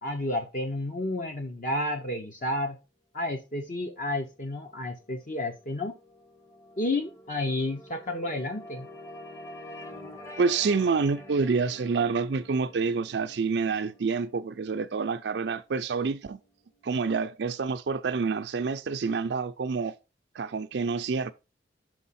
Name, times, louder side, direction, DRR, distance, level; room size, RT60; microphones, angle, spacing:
voice 1, 0.0-2.8 3.1-5.9 6.8-8.9, left 1 dB, 45° left, 0.8 m, -31 dB
sound 1, 4.3-16.7, left 1 dB, 15° left, 0.8 m, -48 dB
voice 2, 10.4-16.4 16.8-19.9 20.3-21.3, right 4 dB, 70° right, 0.4 m, -27 dB
6.4 x 4.7 x 4.2 m
head